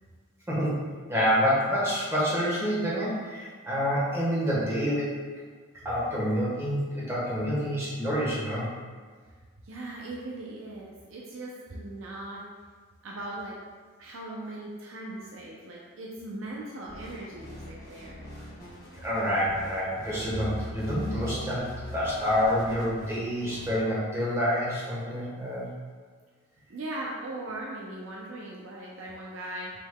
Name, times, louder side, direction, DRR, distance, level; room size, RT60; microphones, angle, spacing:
voice 1, 0.5-0.8 1.1-5.1 5.8-8.6 19.0-25.7, equal, 15° right, -7 dB, 1.2 m, -27 dB
voice 2, 9.6-12.4 13.0-13.6 14.0-18.2 26.7-29.7, right 1 dB, 85° right, -3 dB, 0.6 m, -39 dB
sound 1, 16.9-23.7, left 1 dB, 20° left, 1.0 m, -41 dB
5.8 x 3.8 x 2.3 m, 1.5 s
head